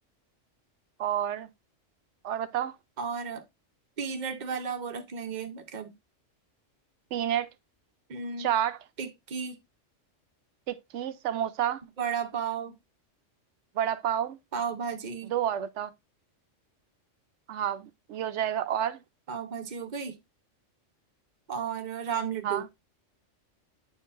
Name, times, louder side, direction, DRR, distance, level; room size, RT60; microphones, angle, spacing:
voice 1, 1.0-1.5 2.2-2.7 7.1-7.5 8.4-8.8 10.7-11.8 13.8-14.4 15.3-15.9 17.5-19.0 22.4-22.6, right 10 dB, 70° right, 0.9 m, -29 dB
voice 2, 3.0-3.5 4.0-5.9 8.1-8.5 9.0-9.6 12.0-12.8 14.5-15.3 19.3-20.2 21.5-22.7, right 6 dB, 40° right, 0.9 m, -34 dB
9.4 x 4.6 x 2.5 m
omnidirectional pair, 1.3 m